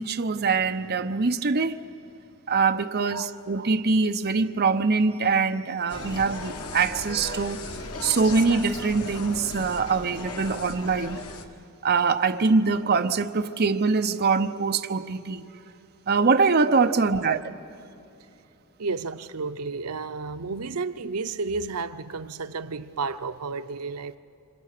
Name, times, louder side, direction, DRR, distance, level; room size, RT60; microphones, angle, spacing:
voice 1, 0.0-1.8 2.5-7.7 8.0-11.2 11.8-15.4 16.1-17.4, right 4 dB, 45° right, 0.8 m, -23 dB
Insect, 5.9-11.4, left 3 dB, 90° left, 1.7 m, -37 dB
voice 2, 18.8-24.2, right 4 dB, 90° right, 0.7 m, -32 dB
27.5 x 26.5 x 6.7 m
head